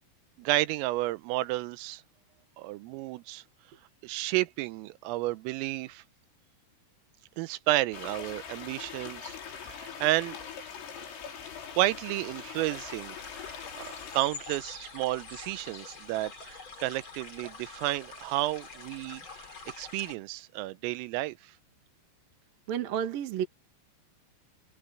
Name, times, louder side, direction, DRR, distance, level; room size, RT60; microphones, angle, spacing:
voice 1, 0.4-2.0 2.6-3.4 4.0-6.0 7.4-9.4 9.6-10.4 11.8-13.2 13.8-19.2 19.8-21.4, right 17 dB, 90° right, 3.5 m, -31 dB
sound 1, 7.9-14.2, left 7 dB, 90° left, 7.7 m, -42 dB
sound 2, 12.5-20.1, left 4 dB, 25° left, 3.7 m, -46 dB
voice 2, 22.7-23.5, right 9 dB, 55° right, 3.0 m, -31 dB
omnidirectional pair, 5.8 m